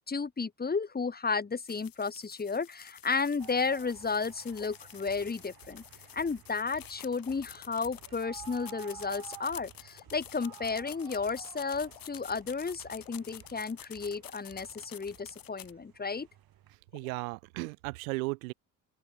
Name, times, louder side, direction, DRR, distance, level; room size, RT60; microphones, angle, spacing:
voice 1, 0.1-5.8 6.1-16.3, left 4 dB, 20° left, 2.0 m, -33 dB
sound 1, 1.6-15.7, left 11 dB, 55° left, 6.3 m, -50 dB
sound 2, 3.4-16.8, right 13 dB, 60° right, 4.0 m, -53 dB
sound 3, 4.0-4.2 4.5-6.9 7.2-8.2 9.9-15.5 16.9-17.3, left 27 dB, 90° left, 5.8 m, -60 dB
voice 2, 16.9-18.5, right 25 dB, 90° right, 2.1 m, -35 dB
open air
supercardioid pair, 75°, 41 cm